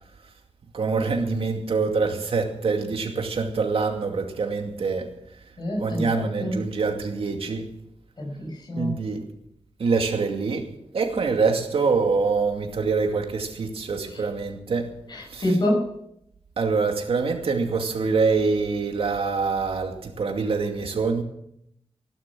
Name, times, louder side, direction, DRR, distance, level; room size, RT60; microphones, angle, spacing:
voice 1, 0.7-5.1 5.8-7.7 8.8-9.2 9.8-14.9 15.3-15.6 16.6-21.2, right 4 dB, 65° right, 2.4 m, -25 dB
voice 2, 5.6-6.1 6.4-6.5 8.2-8.9 15.4-15.8, left 1 dB, 45° left, 5.7 m, -25 dB
17.0 x 12.0 x 6.1 m
wide cardioid pair, 120°, 10 cm